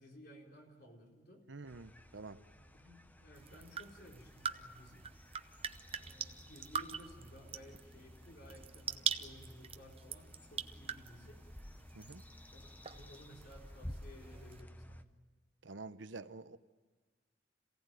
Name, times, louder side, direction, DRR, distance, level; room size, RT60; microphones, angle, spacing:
voice 1, 0.0-1.4 2.5-5.1 5.9-11.4 12.5-15.1, equal, 55° left, 0 dB, 4.3 m, -57 dB
voice 2, 1.5-2.4 11.9-12.2 15.6-16.6, right 3 dB, 80° right, 12 dB, 0.9 m, -48 dB
sound 1, 1.6-15.0, left 1 dB, 10° left, 0.8 m, -54 dB
sound 2, 3.3-14.6, right 7 dB, 30° right, 0.8 m, -44 dB
27.0 x 17.5 x 9.2 m, 1.4 s
head